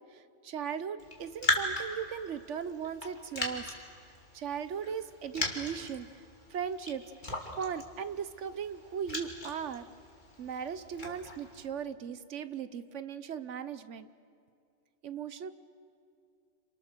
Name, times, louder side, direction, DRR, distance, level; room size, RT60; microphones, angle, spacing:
voice 1, 0.1-3.7 4.3-6.1 6.5-7.0 7.6-9.8 10.4-14.1 15.0-15.5, right 7 dB, 70° right, 12 dB, 1.2 m, -38 dB
Raindrop, 1.0-11.7, left 1 dB, 40° left, 2.8 m, -39 dB
28.0 x 28.0 x 6.7 m, 2.4 s
omnidirectional pair, 1.3 m